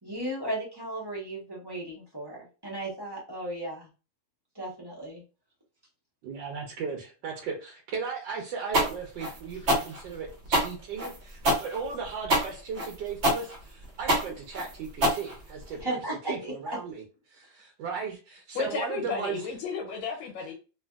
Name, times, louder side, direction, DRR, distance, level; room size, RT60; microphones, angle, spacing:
voice 1, 0.0-3.9 4.5-5.2 15.8-16.5, right 1 dB, 20° right, -5 dB, 0.6 m, -35 dB
voice 2, 6.2-16.0 16.3-17.0 17.3-19.5, right 5 dB, 75° right, 1 dB, 1.3 m, -36 dB
sound 1, 8.7-15.8, right 1 dB, 50° right, 0.9 m, -26 dB
voice 3, 18.5-20.5, left 5 dB, 85° left, 1 dB, 1.5 m, -33 dB
3.4 x 2.5 x 2.3 m, 0.34 s
omnidirectional pair, 2.1 m